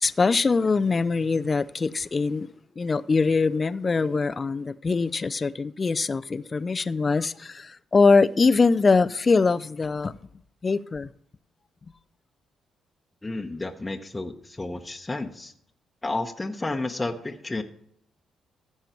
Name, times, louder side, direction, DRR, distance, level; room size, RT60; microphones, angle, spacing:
voice 1, 0.0-2.5 2.8-10.1 10.6-11.1, left 4 dB, 35° left, 0.5 m, -23 dB
voice 2, 13.2-15.5 16.0-17.6, left 2 dB, 20° left, 1.1 m, -31 dB
15.5 x 5.6 x 4.6 m
supercardioid pair, 60°, 0 cm